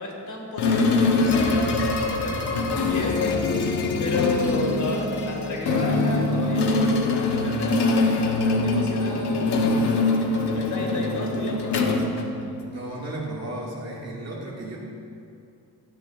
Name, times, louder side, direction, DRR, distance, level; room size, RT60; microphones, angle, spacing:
voice 1, 0.0-3.4 3.6-9.7 10.5-12.0, left 2 dB, 45° left, -1 dB, 1.8 m, -32 dB
sound 1, 0.6-12.8, left 3 dB, 75° left, 0.9 m, -23 dB
voice 2, 12.7-14.8, right 1 dB, 40° right, -4 dB, 1.9 m, -34 dB
13.0 x 8.8 x 2.4 m, 2.5 s
wide cardioid pair, 135°, 41 cm